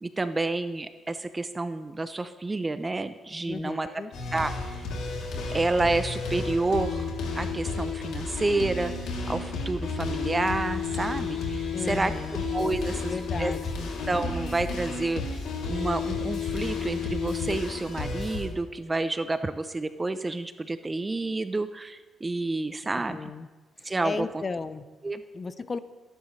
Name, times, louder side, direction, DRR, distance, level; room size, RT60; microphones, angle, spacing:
voice 1, 0.0-3.9 4.3-4.9 5.5-7.1 7.3-12.1 12.5-13.5 14.1-23.3 23.8-24.4 25.0-25.2, right 2 dB, 20° right, 11 dB, 0.6 m, -29 dB
voice 2, 3.5-4.1 11.7-12.4 12.9-13.9 22.8-23.5 23.8-24.9 25.3-25.8, left 4 dB, 35° left, 13 dB, 0.7 m, -35 dB
sound 1, 4.1-18.5, left 4 dB, 80° left, 2.9 m, -32 dB
29.0 x 11.0 x 3.3 m, 1.3 s
cardioid pair, 90°, 0 cm